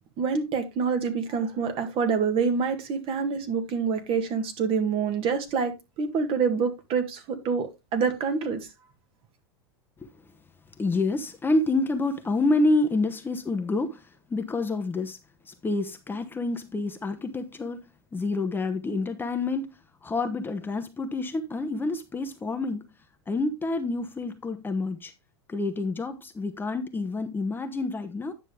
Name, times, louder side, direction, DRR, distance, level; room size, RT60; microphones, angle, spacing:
voice 1, 0.2-8.7, right 5 dB, 45° right, 2.0 m, -26 dB
voice 2, 10.8-15.2 15.4-17.8 18.1-22.9 23.3-25.1 25.5-28.3, left 2 dB, 15° left, 1.0 m, -28 dB
9.7 x 6.3 x 3.4 m
hypercardioid pair, 110°, 13 cm